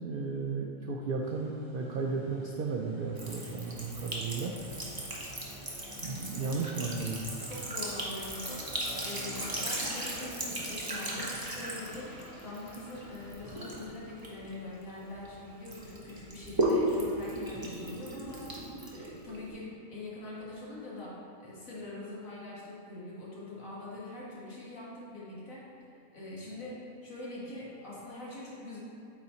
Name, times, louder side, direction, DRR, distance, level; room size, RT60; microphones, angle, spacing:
voice 1, 0.0-4.5 6.0-7.3, right 4 dB, 70° right, 0 dB, 0.5 m, -34 dB
sound 1, 1.2-21.1, equal, 40° left, 1.8 m, -50 dB
Sink (filling or washing) / Trickle dribble, 3.2-15.3 15.7-19.5, right 1 dB, 20° right, 0.8 m, -36 dB
voice 2, 7.5-8.6 9.0-18.5 18.9-25.7 26.1-28.8, left 2 dB, 65° left, -7 dB, 2.1 m, -43 dB
8.7 x 4.0 x 4.3 m, 2.8 s
omnidirectional pair, 1.6 m